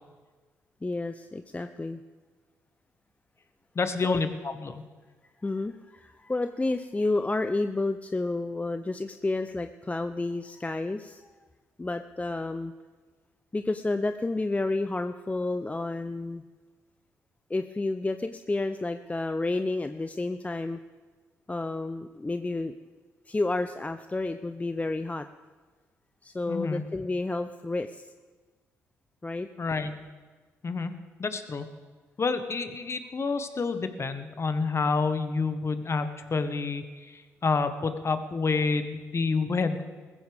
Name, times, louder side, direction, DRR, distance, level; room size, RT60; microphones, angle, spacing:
voice 1, 0.8-2.0 4.0-4.2 5.4-11.2 11.8-12.7 13.5-16.4 17.5-20.8 21.5-22.7 23.3-25.3 26.2-28.1 29.2-29.5, left 2 dB, 20° left, 9 dB, 0.6 m, -30 dB
voice 2, 3.7-4.8 26.5-26.8 29.6-29.9 30.6-30.9 31.2-31.7 32.2-39.8, left 4 dB, 40° left, 9 dB, 1.4 m, -28 dB
20.0 x 14.5 x 3.6 m, 1.4 s
hypercardioid pair, 45°, 7 cm